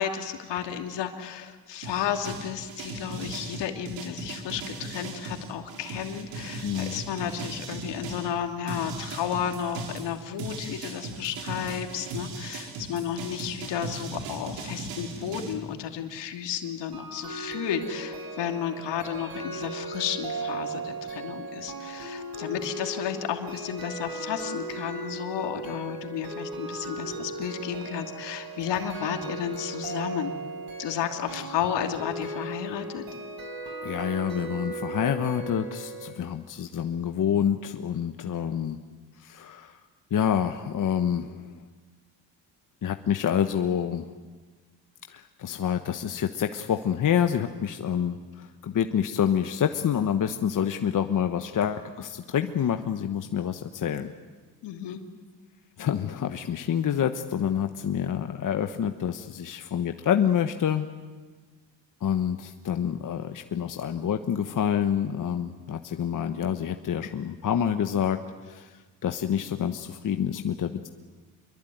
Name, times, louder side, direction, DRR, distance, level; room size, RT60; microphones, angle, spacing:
voice 1, 0.0-30.4 30.8-33.0 54.6-55.0, left 9 dB, 70° left, 5 dB, 3.0 m, -32 dB
sound 1, 1.8-8.3 8.7-15.5, right 3 dB, 85° right, 4.5 m, -38 dB
voice 2, 6.6-7.0 33.8-38.8 39.2-39.8 40.1-41.6 42.8-44.1 45.1-54.1 55.8-60.9 62.0-68.2 68.4-68.7 69.0-70.9, left 9 dB, 45° left, 7 dB, 1.3 m, -27 dB
sound 2, 16.9-36.1, right 2 dB, 55° right, 5.3 m, -37 dB
26.5 x 22.5 x 9.4 m, 1.3 s
cardioid pair, 90°, 44 cm